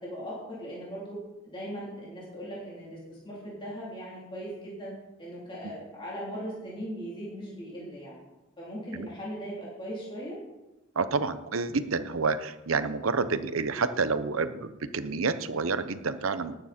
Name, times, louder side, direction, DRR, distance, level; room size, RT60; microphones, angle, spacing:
voice 1, 0.0-8.2 8.6-10.4, equal, 25° left, -6 dB, 3.5 m, -39 dB
voice 2, 11.0-16.6, right 4 dB, 85° right, 12 dB, 0.9 m, -29 dB
19.0 x 9.0 x 4.4 m, 1.0 s
head